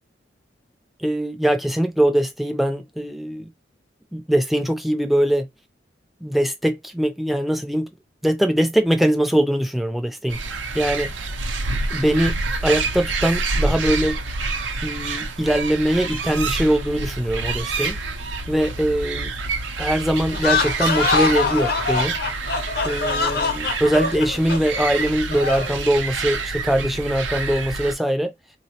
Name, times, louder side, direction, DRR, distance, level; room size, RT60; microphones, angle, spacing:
voice 1, 1.0-3.5 4.1-5.5 6.2-7.9 8.2-10.4 10.7-11.1 11.9-12.4 12.6-14.2 14.8-18.0 18.5-19.3 19.8-22.2 22.8-28.3, right 1 dB, ahead, 0.4 m, -22 dB
sound 1, 10.3-27.9, right 3 dB, 90° right, 0.5 m, -28 dB
sound 2, 20.3-25.8, left 4 dB, 55° left, 0.6 m, -24 dB
3.5 x 2.0 x 2.8 m
head